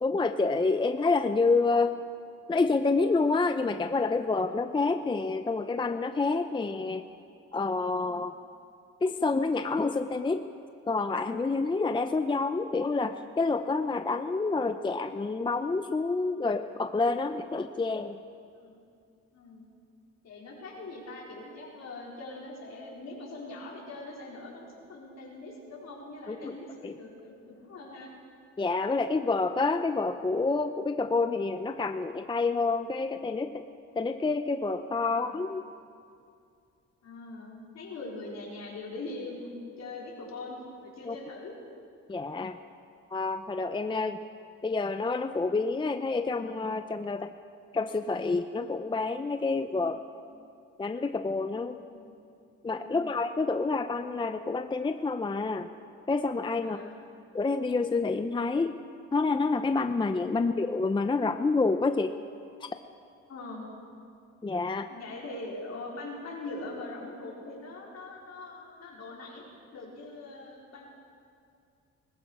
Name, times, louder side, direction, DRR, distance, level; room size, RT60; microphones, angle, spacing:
voice 1, 0.0-2.0 2.5-7.1 7.5-8.4 9.0-10.5 10.8-18.2 26.3-26.5 26.8-27.0 28.6-33.7 34.0-35.6 41.1-41.2 42.1-42.6 43.1-44.2 44.6-47.3 47.7-50.0 50.8-51.8 52.6-55.7 56.1-56.8 57.3-58.8 59.1-62.2 62.6-62.7 64.4-64.9, left 3 dB, 15° left, 9 dB, 0.5 m, -28 dB
voice 2, 19.3-19.6 20.2-28.1 35.0-35.4 37.0-41.5 49.8-50.0 51.9-52.1 52.8-53.1 56.6-56.9 60.4-60.6 63.3-63.7 64.9-69.4 69.7-70.8, left 2 dB, 60° left, -3 dB, 4.2 m, -42 dB
19.5 x 14.5 x 4.9 m, 2.4 s
cardioid pair, 90°, 30 cm